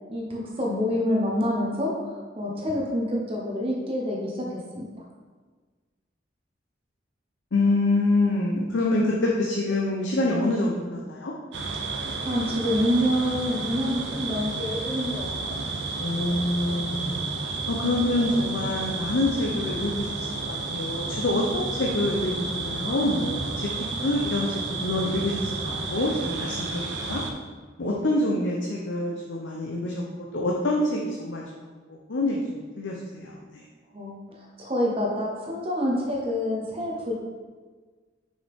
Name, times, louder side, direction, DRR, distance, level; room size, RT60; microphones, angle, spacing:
voice 1, 0.1-1.9 2.4-4.9 12.2-15.6 27.8-28.1 33.9-37.1, equal, 30° right, -2 dB, 0.9 m, -27 dB
voice 2, 7.5-11.3 16.0-23.7 24.0-27.2 27.8-30.0 30.3-31.4 31.9-33.6, left 2 dB, 80° left, -2 dB, 0.7 m, -26 dB
sound 1, 11.5-27.3, right 3 dB, 75° right, 0.7 m, -31 dB
5.6 x 5.5 x 3.6 m, 1.4 s
head